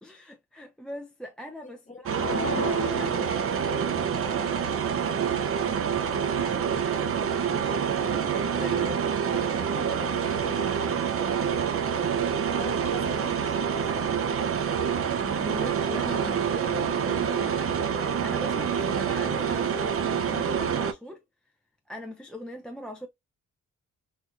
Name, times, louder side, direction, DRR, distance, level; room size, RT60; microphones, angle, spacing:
voice 1, 0.0-3.4 7.3-7.8 8.1-9.0 15.1-21.2 21.9-23.1, equal, 5° left, 0.4 m, -41 dB
voice 2, 1.6-2.0 6.1-6.7 7.6-8.2 8.5-11.7 12.5-14.4, left 2 dB, 25° left, 1.1 m, -45 dB
sound 1, 2.1-4.2, left 3 dB, 60° left, 1.2 m, -34 dB
sound 2, 2.1-20.9, right 7 dB, 45° right, 0.5 m, -27 dB
4.3 x 2.4 x 2.3 m
cardioid pair, 105°, 31 cm